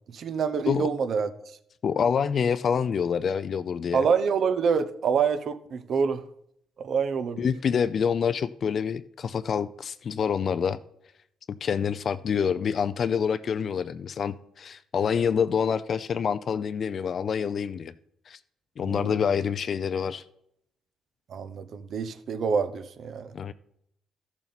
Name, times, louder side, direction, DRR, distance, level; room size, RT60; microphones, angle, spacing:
voice 1, 0.1-1.3 3.9-6.2 6.8-7.4 18.8-19.2 21.3-23.3, right 6 dB, 60° right, 0.8 m, -26 dB
voice 2, 1.8-4.1 7.4-10.8 11.5-17.9 18.3-18.4 18.8-20.2 23.3-23.5, left 7 dB, 55° left, 0.4 m, -27 dB
13.5 x 7.1 x 4.1 m
cardioid pair, 90°, 0 cm